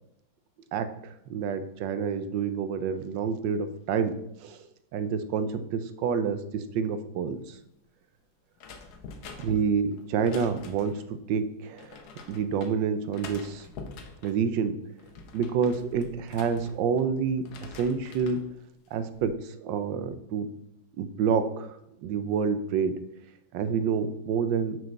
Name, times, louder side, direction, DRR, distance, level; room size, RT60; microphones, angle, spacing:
voice 1, 0.7-4.1 4.4-4.7 4.9-7.6 9.4-11.0 11.3-12.0 12.3-13.7 14.2-14.8 15.3-17.4 17.7-18.4 18.9-20.5 21.0-23.0 23.5-24.8, right 6 dB, 80° right, 11 dB, 1.3 m, -28 dB
sound 1, 8.6-11.1 11.8-12.7 13.1-14.4 14.9-17.1 17.4-18.5 18.9-19.3, left 4 dB, 65° left, 1.3 m, -46 dB
6.2 x 4.7 x 6.4 m, 0.79 s
omnidirectional pair, 2.0 m